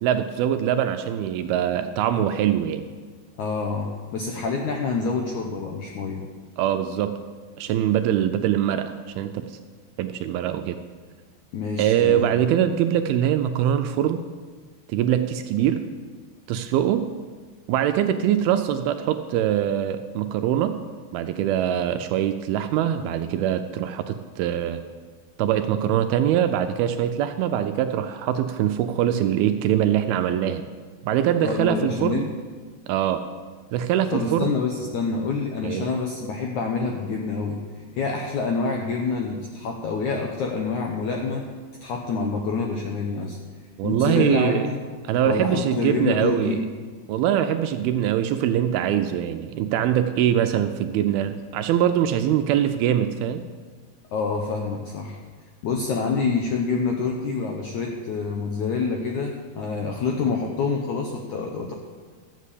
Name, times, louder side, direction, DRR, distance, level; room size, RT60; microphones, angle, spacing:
voice 1, 0.0-2.8 6.6-7.2 7.6-9.5 10.0-10.8 11.8-14.2 14.9-15.8 16.5-17.0 17.7-20.8 21.1-24.8 25.4-30.6 31.0-32.3 32.9-33.2 33.7-34.5 35.6-35.9 43.8-44.7 45.1-46.6 47.1-53.4, right 10 dB, 80° right, 8 dB, 2.3 m, -23 dB
voice 2, 3.4-6.2 11.5-12.3 31.4-32.3 34.1-37.6 37.9-41.5 41.8-43.4 43.8-44.8 45.3-46.6 54.1-55.2 55.6-61.7, left 4 dB, 75° left, 1 dB, 1.7 m, -27 dB
12.5 x 7.5 x 8.3 m, 1.5 s
omnidirectional pair, 4.7 m